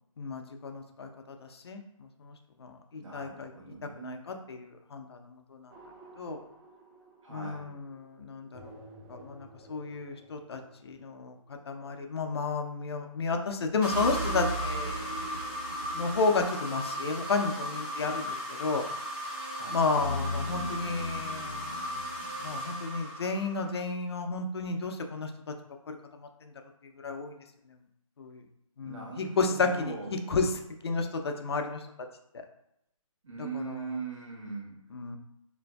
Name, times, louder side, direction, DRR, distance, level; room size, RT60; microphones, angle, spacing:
voice 1, 0.2-1.8 2.2-3.5 4.0-5.4 6.2-6.4 7.3-8.7 9.1-11.3 11.7-15.3 15.9-18.8 19.7-21.7 22.4-25.3 25.9-26.0 26.4-26.5 27.0-27.3 28.2-28.4 28.8-30.5 30.8-31.8 33.5-33.8 34.9-35.2, left 4 dB, 50° left, 5 dB, 0.4 m, -32 dB
voice 2, 2.9-4.3 7.2-7.7 19.5-19.8 28.8-30.1 33.2-34.8, right 4 dB, 60° right, -3 dB, 1.0 m, -41 dB
sound 1, 5.7-7.5 8.5-10.7 13.9-17.6 20.0-22.8, right 1 dB, 35° right, 1.1 m, -39 dB
sound 2, 13.8-23.8, equal, 5° right, 0.7 m, -36 dB
3.8 x 2.5 x 2.2 m, 0.78 s
figure-of-eight pair, 155°, 18 cm